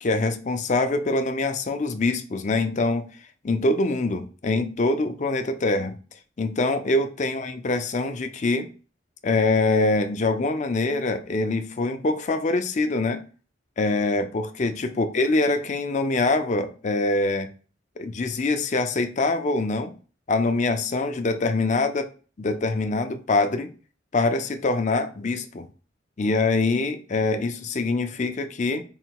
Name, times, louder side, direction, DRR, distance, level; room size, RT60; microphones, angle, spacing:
voice 1, 0.0-3.0 3.4-5.9 6.4-8.7 9.2-13.2 13.8-17.5 18.0-19.9 20.3-22.1 22.4-23.7 24.1-25.7 26.2-28.8, left 2 dB, 40° left, 0.5 m, -24 dB
3.9 x 2.2 x 4.5 m
head